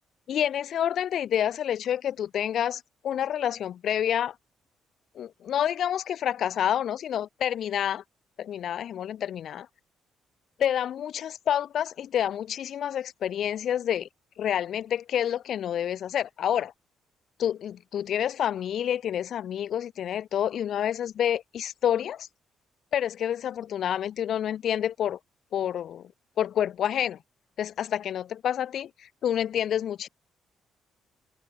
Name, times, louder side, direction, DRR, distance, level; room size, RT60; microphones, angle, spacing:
voice 1, 0.3-4.3 5.2-8.0 8.4-9.7 10.6-14.1 14.4-16.7 17.4-22.3 22.9-25.2 25.5-26.0 26.4-27.2 27.6-28.9 29.2-30.1, left 10 dB, 65° left, 3.5 m, -28 dB
cardioid pair, 90°, 0 cm